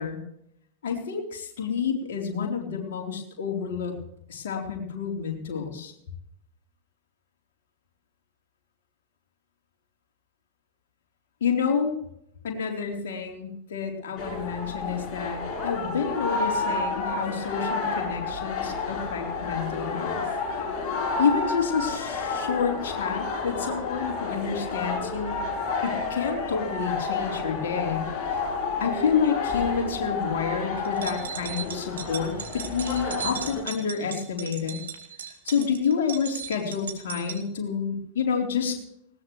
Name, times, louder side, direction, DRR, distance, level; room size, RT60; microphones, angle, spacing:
voice 1, 0.8-3.9 4.3-5.9 11.4-11.9 12.4-20.2 21.2-25.5 25.8-28.0 28.8-34.8 35.4-38.8, left 6 dB, 60° left, 1 dB, 3.8 m, -29 dB
sound 1, 14.2-33.6, left 4 dB, 30° left, 7.0 m, -30 dB
sound 2, 30.9-37.4, right 8 dB, 65° right, 2.1 m, -37 dB
20.0 x 18.0 x 3.2 m, 0.75 s
figure-of-eight pair, 90°, 0 cm